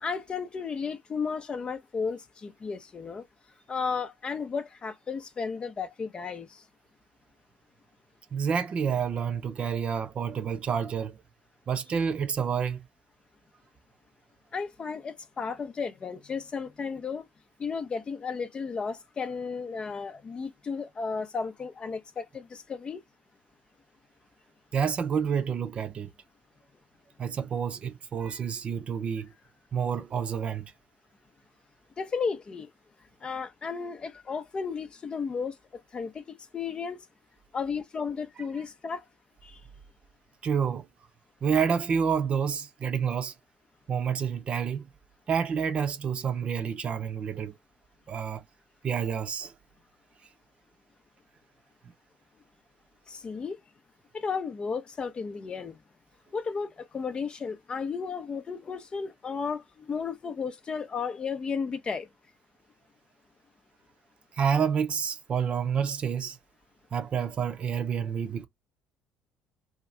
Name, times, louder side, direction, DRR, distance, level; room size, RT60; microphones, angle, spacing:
voice 1, 0.0-3.2 3.7-6.6 14.5-17.3 17.6-23.0 32.0-32.7 33.2-35.6 35.9-37.0 37.5-39.0 39.4-39.6 53.1-53.6 54.1-55.8 56.3-62.1, left 5 dB, 35° left, 0.6 m, -34 dB
voice 2, 8.3-11.2 11.7-12.8 24.7-26.1 27.2-29.3 29.7-30.7 40.4-40.9 41.4-43.3 43.9-44.9 45.3-47.6 48.1-48.4 48.8-49.5 64.4-66.4 66.9-68.5, right 7 dB, 40° right, 0.6 m, -29 dB
2.7 x 2.5 x 3.2 m
hypercardioid pair, 60°, 3 cm